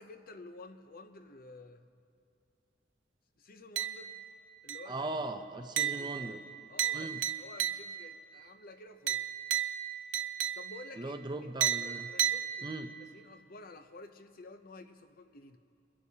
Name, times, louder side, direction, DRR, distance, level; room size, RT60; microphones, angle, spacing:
voice 1, 0.0-1.9 3.4-4.2 4.6-5.1 5.6-5.7 6.0-6.4 6.7-9.3 10.6-11.2 11.8-12.7 13.1-15.6, left 2 dB, 55° left, 8 dB, 0.7 m, -51 dB
sound 1, 3.8-4.3 4.7-5.1 5.8-8.2 9.1-11.0 11.6-13.0, right 10 dB, 80° right, 0.6 m, -34 dB
voice 2, 4.9-6.4 6.9-7.2 11.0-12.1 12.6-12.9, right 2 dB, 25° right, 7 dB, 0.6 m, -39 dB
28.5 x 11.0 x 2.8 m, 2.6 s
head